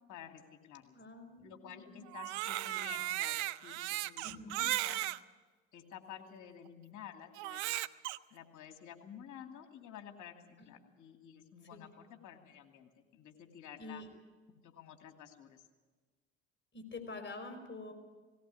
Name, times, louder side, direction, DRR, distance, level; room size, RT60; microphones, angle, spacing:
voice 1, 0.1-1.0 1.4-4.2 4.5-5.0 5.7-7.6 8.3-14.0 14.6-15.7, left 9 dB, 60° left, 5 dB, 2.6 m, -52 dB
voice 2, 0.9-2.0 4.2-4.6 10.6-10.7 11.7-11.8 13.8-14.1 16.7-17.9, left 3 dB, 35° left, 6 dB, 4.8 m, -47 dB
Crying sobbing, 2.1-5.2 5.9-6.0 7.4-8.2, right 16 dB, 75° right, 0.7 m, -36 dB
19.0 x 18.0 x 8.5 m, 1.3 s
hypercardioid pair, 65°, 34 cm